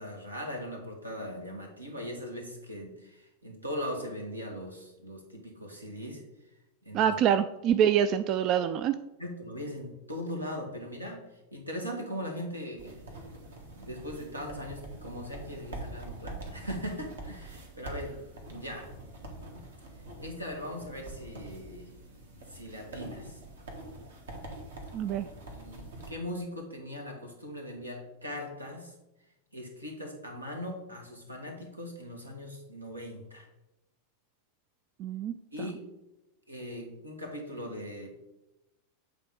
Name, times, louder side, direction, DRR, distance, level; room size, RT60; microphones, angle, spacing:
voice 1, 0.0-6.2 6.8-7.1 9.2-13.1 13.8-18.2 18.5-18.9 20.2-21.9 22.5-23.4 25.5-28.9 29.5-33.5 35.5-35.8 36.5-38.1, equal, 85° right, 2 dB, 1.6 m, -39 dB
voice 2, 6.9-9.0 24.9-25.3 35.0-35.3, right 9 dB, 35° right, 11 dB, 0.3 m, -25 dB
sound 1, 12.8-26.1, right 2 dB, 65° right, 1.6 m, -45 dB
8.4 x 3.6 x 5.1 m, 0.95 s
figure-of-eight pair, 90°, 0 cm